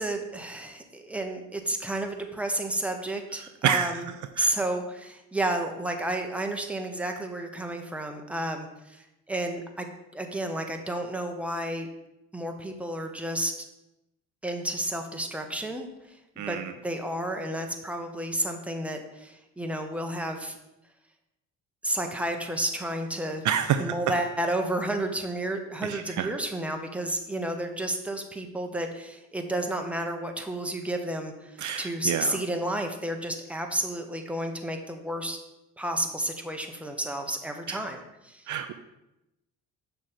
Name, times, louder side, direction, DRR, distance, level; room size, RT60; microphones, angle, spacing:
voice 1, 0.0-9.9 10.1-11.9 12.3-13.5 14.4-16.6 16.8-20.6 21.8-23.4 23.8-35.4 35.8-38.5, right 1 dB, 5° right, 4 dB, 1.0 m, -31 dB
voice 2, 23.4-23.8 26.2-26.3 31.6-32.4 37.7-37.8 38.5-38.7, right 9 dB, 60° right, 8 dB, 0.5 m, -27 dB
6.4 x 3.4 x 5.7 m, 0.92 s
supercardioid pair, 60°, 34 cm